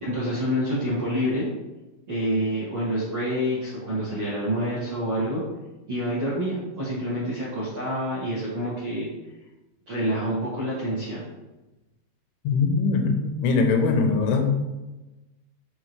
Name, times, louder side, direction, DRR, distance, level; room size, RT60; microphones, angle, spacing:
voice 1, 0.0-1.5 2.1-5.4 5.9-9.1 9.9-11.2, equal, 45° right, -11 dB, 1.7 m, -27 dB
voice 2, 12.4-14.5, left 4 dB, 85° left, 4 dB, 3.2 m, -22 dB
8.9 x 3.7 x 3.1 m, 1.1 s
omnidirectional pair, 5.4 m